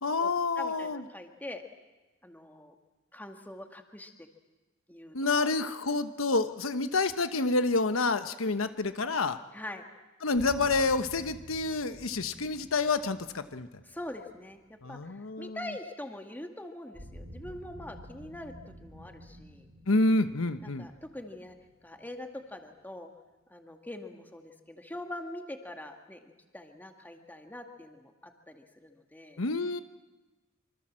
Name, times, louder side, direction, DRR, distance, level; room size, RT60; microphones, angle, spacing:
voice 1, 0.0-1.0 5.1-9.4 10.2-13.7 14.8-15.6 19.9-20.9 29.4-29.8, left 3 dB, 85° left, 10 dB, 1.1 m, -28 dB
voice 2, 0.6-1.6 2.2-2.7 3.1-4.1 4.9-5.5 9.5-9.8 13.9-14.6 14.9-18.5 18.8-19.7 20.6-21.6 21.8-23.1 23.5-29.4, left 1 dB, 10° left, 4 dB, 2.1 m, -43 dB
sound 1, 10.3-15.3 16.9-22.6, equal, 65° right, 5.5 m, -50 dB
25.5 x 25.5 x 7.6 m, 1.2 s
head